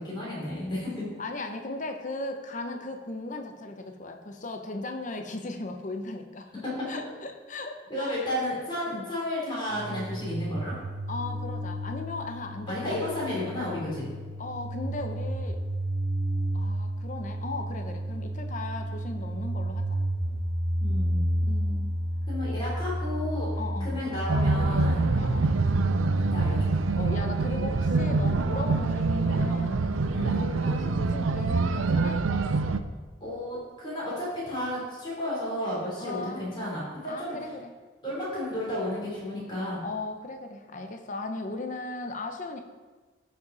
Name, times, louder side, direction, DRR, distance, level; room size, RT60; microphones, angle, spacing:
voice 1, 0.0-1.0 6.6-6.8 7.9-10.7 12.7-14.1 20.8-21.3 22.3-23.5 23.8-25.0 26.3-26.7 30.1-30.5 33.2-37.4 38.0-39.8, left 1 dB, 25° left, -6 dB, 3.3 m, -32 dB
voice 2, 1.2-6.5 6.9-8.4 8.9-9.1 11.1-13.0 14.4-15.6 16.5-20.0 21.4-21.9 22.5-22.6 23.6-24.0 25.1-25.6 26.9-29.8 30.2-32.2 36.0-36.5 37.1-37.7 39.8-42.6, left 2 dB, 40° left, 5 dB, 0.8 m, -37 dB
sound 1, 9.7-28.9, right 1 dB, 25° right, 0.7 m, -31 dB
sound 2, 24.3-32.8, right 3 dB, 85° right, 0.5 m, -26 dB
14.0 x 5.4 x 4.1 m, 1.3 s
head